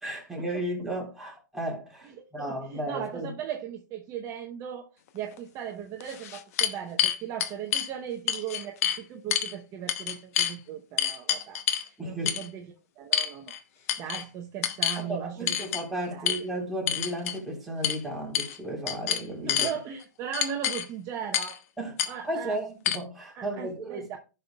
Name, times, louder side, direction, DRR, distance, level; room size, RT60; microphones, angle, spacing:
voice 1, 0.0-3.3 12.0-12.3 14.0-14.1 15.0-19.7 21.8-24.1, right 1 dB, ahead, 3.6 m, -34 dB
voice 2, 2.2-13.6 14.0-15.7 16.1-16.4 19.5-21.6 22.1-22.5 23.3-24.2, right 9 dB, 35° right, 0.8 m, -38 dB
sound 1, 5.4-5.5 6.0-7.9 8.3-9.0 9.3-9.5 9.9-10.5 11.0-11.9 12.3-12.5 13.1-13.6 13.9-14.2 14.6-15.0 15.5-15.8 16.3-16.4 16.9-17.4 17.8-18.0 18.3-18.6 18.9-19.7 20.3-20.9 21.3-21.6 22.0-22.1 22.9-23.0, left 10 dB, 55° left, 0.9 m, -27 dB
15.0 x 5.6 x 2.3 m
hypercardioid pair, 115°, 10 cm